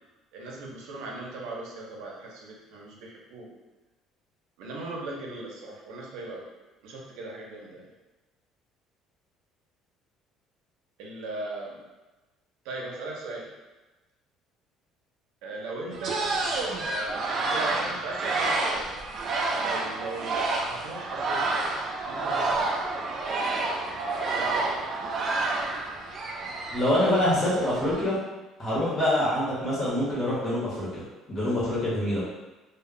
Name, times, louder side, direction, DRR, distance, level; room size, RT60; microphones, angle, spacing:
voice 1, 0.3-3.5 4.6-6.4 6.8-7.9 11.0-11.8 12.6-13.5 15.4-16.3 16.8-18.9 19.6-21.6 22.1-22.7 24.3-24.6, right 2 dB, 85° right, -2 dB, 0.6 m, -38 dB
sound 1, 15.9-28.0, right 3 dB, 35° right, 0.3 m, -29 dB
voice 2, 26.7-28.2 28.6-31.0 31.3-32.2, left 1 dB, 25° left, -8 dB, 0.9 m, -25 dB
2.2 x 2.1 x 3.6 m, 1.1 s
cardioid pair, 175°, 0 cm